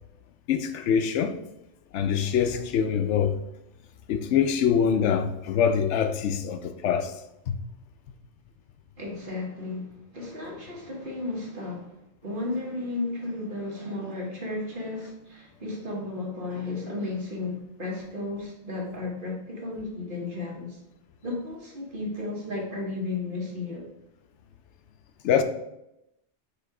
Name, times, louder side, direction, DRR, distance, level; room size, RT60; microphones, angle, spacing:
voice 1, 0.5-1.4 1.9-3.3 4.1-7.1 7.5-7.6 25.2-25.4, left 7 dB, 80° left, 0.9 m, -24 dB
voice 2, 9.0-11.9 12.2-20.8 21.2-23.9, left 2 dB, 50° right, 1.5 m, -34 dB
7.0 x 3.1 x 4.8 m
omnidirectional pair, 1.2 m